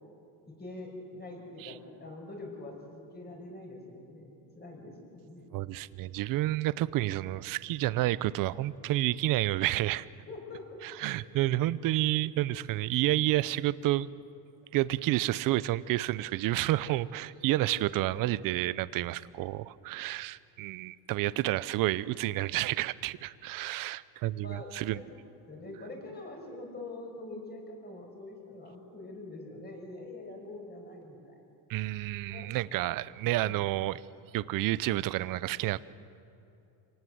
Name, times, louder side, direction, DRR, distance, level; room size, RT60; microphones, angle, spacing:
voice 1, 0.6-5.5 10.3-10.6 24.4-25.0 25.5-31.3 32.3-32.5 32.9-33.0 33.4-33.6, left 2 dB, 20° left, 1 dB, 5.8 m, -44 dB
voice 2, 5.5-10.1 10.8-14.1 14.7-25.0 31.7-34.0 34.3-35.8, right 16 dB, 45° right, 18 dB, 0.7 m, -30 dB
27.5 x 18.5 x 7.9 m, 2.7 s
cardioid pair, 140°, 46 cm